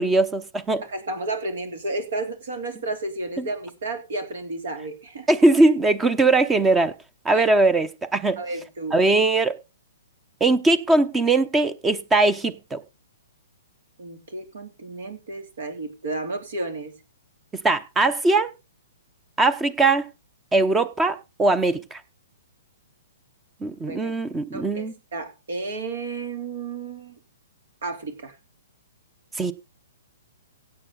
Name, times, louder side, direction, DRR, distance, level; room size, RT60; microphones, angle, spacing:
voice 1, 0.0-0.8 3.4-3.5 5.3-6.9 7.2-8.4 8.9-9.6 10.4-12.8 17.6-18.5 19.4-20.1 20.5-22.0 23.6-25.0 29.3-29.5, right 2 dB, 10° right, 0.9 m, -20 dB
voice 2, 0.9-5.3 7.3-7.4 8.4-9.0 14.0-16.9 23.9-24.1 24.5-27.1 27.8-28.3, right 2 dB, 65° right, 3.0 m, -32 dB
16.5 x 7.1 x 4.0 m
figure-of-eight pair, 120°, 0 cm